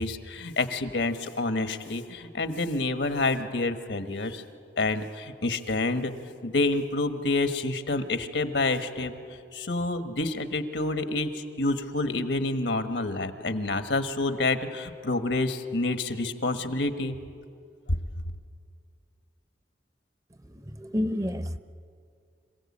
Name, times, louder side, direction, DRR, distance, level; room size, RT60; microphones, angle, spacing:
voice 1, 0.0-4.4 4.8-6.1 6.4-9.2 9.5-17.2 17.9-18.0, left 2 dB, 80° left, 8 dB, 1.3 m, -28 dB
voice 2, 20.5-21.6, left 1 dB, 15° right, 11 dB, 0.6 m, -30 dB
26.0 x 16.0 x 8.6 m, 2.3 s
head